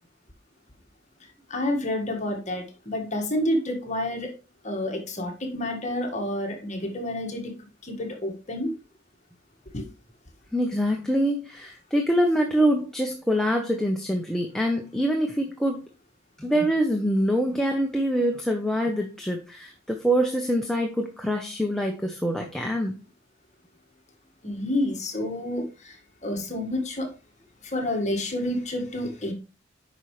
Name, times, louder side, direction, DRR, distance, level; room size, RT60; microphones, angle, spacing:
voice 1, 1.2-4.3 4.6-7.5 7.8-8.7 9.7-9.9 24.4-27.1 27.6-29.3, left 1 dB, 35° left, 2 dB, 1.8 m, -29 dB
voice 2, 10.5-15.8 16.4-22.9, equal, ahead, 1 dB, 0.8 m, -25 dB
8.9 x 5.7 x 3.2 m, 0.31 s
head